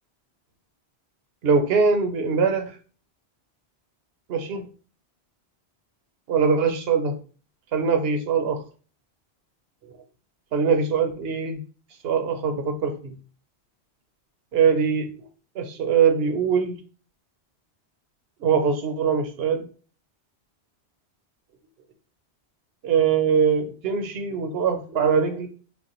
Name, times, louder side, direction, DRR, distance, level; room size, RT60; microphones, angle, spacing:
voice 1, 1.4-2.7 4.3-4.6 6.3-7.1 7.7-8.6 10.5-11.6 12.0-13.1 14.5-15.1 15.6-16.8 18.4-19.6 22.8-25.5, right 6 dB, 70° right, 6 dB, 0.9 m, -22 dB
5.0 x 2.1 x 3.0 m, 0.39 s
omnidirectional pair, 1.1 m